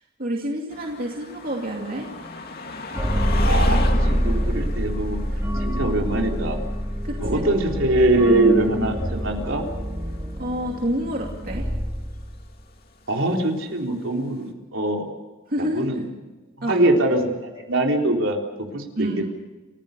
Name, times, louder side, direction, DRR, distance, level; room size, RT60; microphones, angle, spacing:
voice 1, 0.0-2.1 7.0-7.5 10.4-11.7 15.5-15.9 16.6-16.7 18.9-19.3, equal, 45° right, 0 dB, 2.6 m, -28 dB
sound 1, 0.7-11.4 12.2-12.3, left 2 dB, 45° left, 2.7 m, -36 dB
sound 2, 2.9-12.6, equal, 10° right, 2.0 m, -25 dB
voice 2, 3.4-5.2 5.6-6.6 7.2-9.7 13.1-15.1 15.6-16.1 16.6-19.1, right 2 dB, 65° right, 1 dB, 3.7 m, -23 dB
29.5 x 15.5 x 6.9 m, 1.2 s
head